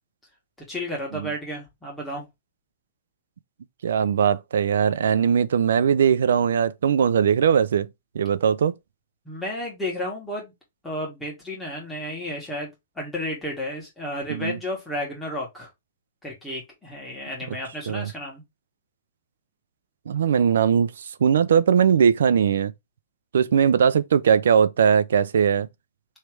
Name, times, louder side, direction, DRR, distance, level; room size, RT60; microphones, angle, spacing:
voice 1, 0.7-2.3 9.3-10.5 10.8-12.7 13.0-15.7 16.2-18.4, left 1 dB, 5° left, 1.8 m, -32 dB
voice 2, 3.8-7.9 8.1-8.7 14.3-14.6 17.9-18.1 20.1-22.7 23.3-25.7, right 7 dB, 85° right, 0.5 m, -20 dB
3.2 x 3.2 x 4.7 m
hypercardioid pair, 165°, 0 cm